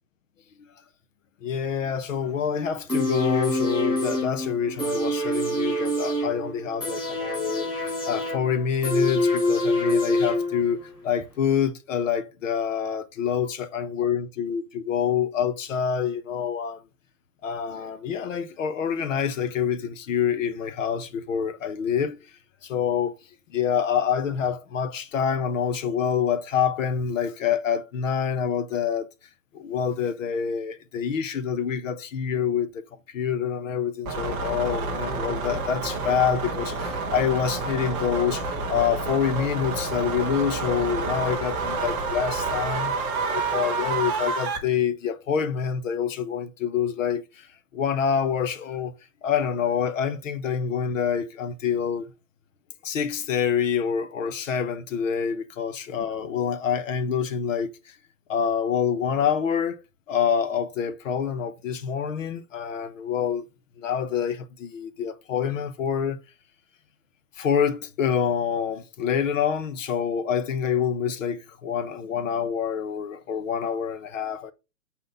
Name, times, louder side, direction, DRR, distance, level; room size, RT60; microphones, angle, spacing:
voice 1, 1.4-16.8 17.4-22.2 22.6-23.1 23.5-29.1 29.5-32.8 33.1-42.9 43.3-47.5 47.7-48.9 49.2-52.1 52.8-57.9 58.3-59.8 60.1-63.5 63.8-66.2 67.4-74.5, left 7 dB, 55° left, 1.1 m, -26 dB
sound 1, 2.9-10.9 11.2-11.3, left 1 dB, 10° left, 4.6 m, -26 dB
sound 2, 34.0-44.6, right 4 dB, 10° right, 0.4 m, -29 dB
7.5 x 4.2 x 3.9 m
hypercardioid pair, 130°, 47 cm